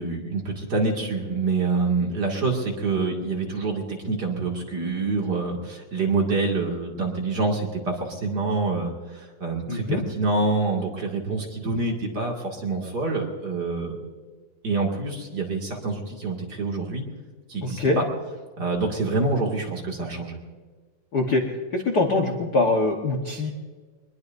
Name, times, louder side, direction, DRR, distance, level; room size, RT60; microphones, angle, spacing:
voice 1, 0.0-14.0 14.6-17.0 17.5-18.0 18.6-20.4, right 3 dB, 35° right, -1 dB, 2.4 m, -26 dB
voice 2, 9.7-10.0 17.6-18.0 21.1-21.4 21.7-23.5, left 2 dB, 90° left, 1 dB, 0.8 m, -23 dB
23.0 x 21.0 x 2.6 m, 1.4 s
omnidirectional pair, 3.9 m